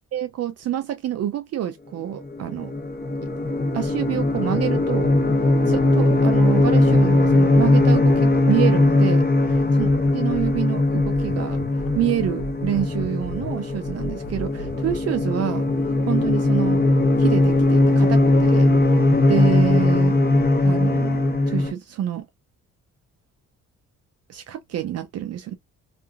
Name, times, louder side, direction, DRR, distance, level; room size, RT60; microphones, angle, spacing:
voice 1, 0.1-2.7 3.7-5.1 5.7-9.2 9.8-11.6 11.9-15.7 16.1-16.8 17.2-18.7 19.3-20.2 20.6-22.3 24.3-25.5, right 11 dB, 55° right, 0.5 m, -27 dB
sound 1, 2.2-21.7, left 2 dB, 30° left, 1.0 m, -19 dB
sound 2, 9.4-15.0, equal, 50° left, 0.7 m, -36 dB
2.8 x 2.5 x 2.4 m
cardioid pair, 90°, 30 cm